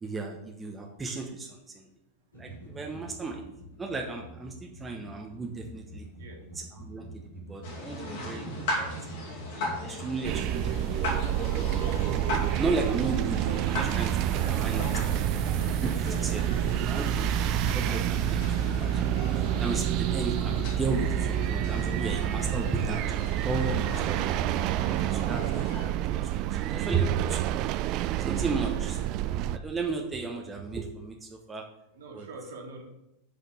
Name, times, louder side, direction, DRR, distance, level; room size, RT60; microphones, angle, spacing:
voice 1, 0.0-1.9 2.3-3.4 3.8-6.0 6.8-8.9 9.8-11.6 12.5-15.0 15.5-15.6 15.8-16.5 16.8-17.3 17.7-24.5 25.1-25.6 25.9-27.6 28.2-31.6 32.1-32.3, right 4 dB, 15° right, 1 dB, 1.1 m, -34 dB
sound 1, 2.3-20.8, right 2 dB, 80° left, 2.7 m, -45 dB
voice 2, 6.2-6.5 14.5-15.4 16.1-16.7 31.9-32.8, right 3 dB, 60° right, 1 dB, 2.3 m, -46 dB
sound 2, 7.6-25.9, left 1 dB, 50° left, 2.3 m, -38 dB
sound 3, 10.2-29.6, right 11 dB, 40° right, 0.4 m, -28 dB
6.7 x 5.7 x 7.3 m, 0.87 s
figure-of-eight pair, 90°, 0 cm